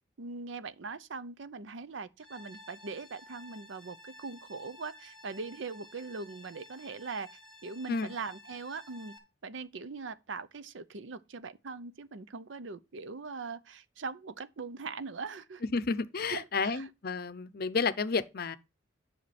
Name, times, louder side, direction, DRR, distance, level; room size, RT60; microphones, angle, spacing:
voice 1, 0.2-7.3 7.6-9.1 9.4-15.6 16.3-16.9, right 4 dB, 70° right, 0.6 m, -41 dB
sound 1, 2.2-9.2, left 1 dB, ahead, 1.7 m, -53 dB
voice 2, 15.7-18.6, left 4 dB, 50° left, 0.6 m, -31 dB
10.5 x 5.8 x 4.2 m
head